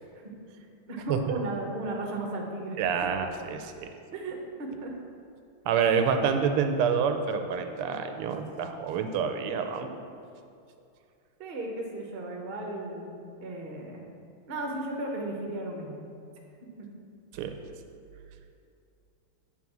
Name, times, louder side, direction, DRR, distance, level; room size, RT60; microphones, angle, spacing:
voice 1, 0.9-2.8 4.1-4.9 11.4-13.1 13.4-14.0 14.5-16.0 16.8-16.9, right 2 dB, 50° right, 1 dB, 0.7 m, -35 dB
voice 2, 2.8-3.9 5.6-9.9 17.3-17.6, right 6 dB, 85° right, 7 dB, 1.5 m, -27 dB
8.3 x 4.0 x 6.1 m, 2.5 s
omnidirectional pair, 2.4 m